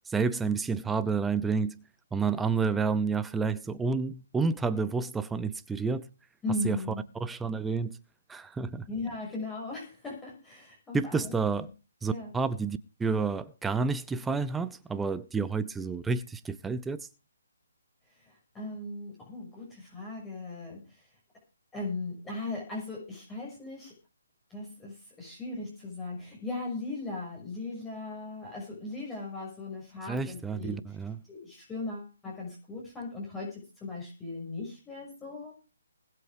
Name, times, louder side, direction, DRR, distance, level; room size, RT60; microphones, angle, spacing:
voice 1, 0.1-1.8 2.1-6.1 6.6-6.8 7.1-8.0 8.3-8.9 10.9-11.7 12.0-17.1 30.1-31.2, right 4 dB, 5° right, 0.7 m, -30 dB
voice 2, 6.4-7.0 8.9-11.3 11.6-11.7 12.1-12.3 18.1-21.1 21.7-23.9 24.5-30.8 31.3-35.5, left 2 dB, 10° left, 6.4 m, -38 dB
20.0 x 7.6 x 5.1 m
figure-of-eight pair, 145°, 0 cm